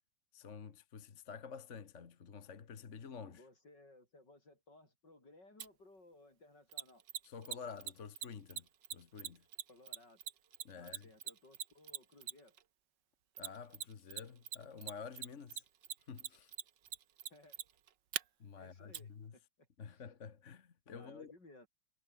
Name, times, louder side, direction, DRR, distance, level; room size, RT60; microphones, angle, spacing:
voice 1, 0.3-3.4 7.2-9.5 10.7-11.1 13.4-15.6 16.1-16.5 18.4-19.3 19.8-21.3, left 6 dB, 45° left, 1.7 m, -50 dB
voice 2, 3.3-7.0 9.7-10.2 10.7-12.6 17.3-17.6 18.6-20.0 20.9-21.7, left 2 dB, 75° left, 8.6 m, -61 dB
Mechanisms, 5.6-5.7 6.7-12.6 13.4-14.2 14.5-18.2 18.9-19.0, right 9 dB, 80° right, 1.9 m, -41 dB
omnidirectional pair, 1.9 m